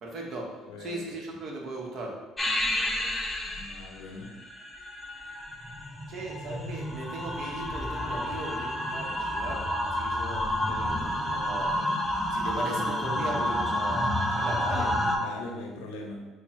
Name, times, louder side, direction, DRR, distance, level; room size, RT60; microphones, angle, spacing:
voice 1, 0.0-2.2 6.1-11.9 12.3-15.0, right 2 dB, 55° right, 0 dB, 0.8 m, -38 dB
voice 2, 0.7-1.0 3.5-4.3 15.1-16.2, left 2 dB, 80° left, 1 dB, 0.6 m, -41 dB
sound 1, 2.4-15.2, left 1 dB, 15° left, 0.6 m, -30 dB
4.3 x 2.1 x 3.0 m, 1.2 s
hypercardioid pair, 65°, 0 cm